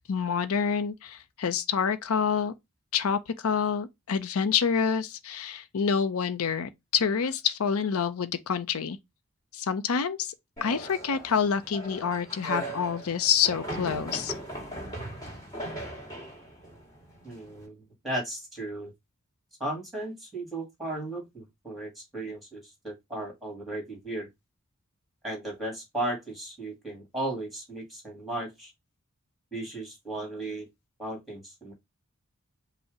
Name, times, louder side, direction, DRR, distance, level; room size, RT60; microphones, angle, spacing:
voice 1, 0.1-2.5 2.9-9.0 9.5-10.3 10.6-14.3, left 6 dB, 70° left, 0.5 m, -27 dB
sound 1, 10.6-17.6, right 1 dB, 15° left, 2.3 m, -39 dB
voice 2, 17.2-18.9 19.6-24.3 25.2-28.7 29.5-30.7 31.0-31.7, right 1 dB, ahead, 2.1 m, -35 dB
5.2 x 2.1 x 4.9 m
head